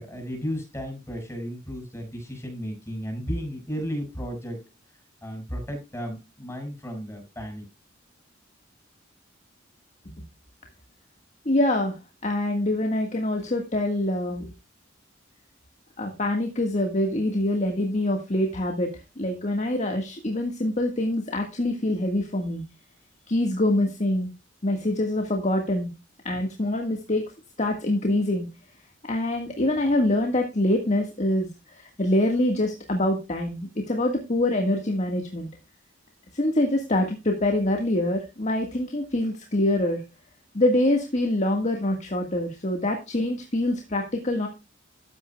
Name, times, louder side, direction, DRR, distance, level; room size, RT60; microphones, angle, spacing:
voice 1, 0.0-4.6 5.2-7.6, equal, 15° left, 3 dB, 6.5 m, -34 dB
voice 2, 11.4-14.5 16.0-18.9 19.2-22.6 23.3-24.3 24.6-25.9 26.2-27.2 27.6-28.5 29.0-35.5 36.3-40.0 40.5-44.5, left 1 dB, 35° left, 2 dB, 1.6 m, -25 dB
13.5 x 9.3 x 2.3 m, 0.26 s
head